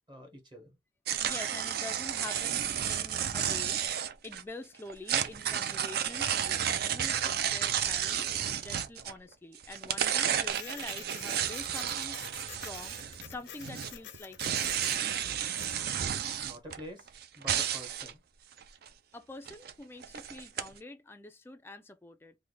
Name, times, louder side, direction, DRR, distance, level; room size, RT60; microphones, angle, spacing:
voice 1, 0.1-0.8 16.4-18.2, equal, 25° right, 0.8 m, -48 dB
sound 1, 1.1-4.4 4.9-9.3 9.6-13.3 13.6-18.1 18.6-18.9 19.5-19.7 20.0-20.7, right 9 dB, 55° right, 0.4 m, -32 dB
voice 2, 1.2-12.2 12.5-13.0 13.2-14.8 19.1-22.4, left 2 dB, 10° left, 0.3 m, -46 dB
Printer, 10.5-15.9, left 9 dB, 65° left, 0.5 m, -48 dB
3.2 x 2.1 x 3.7 m
head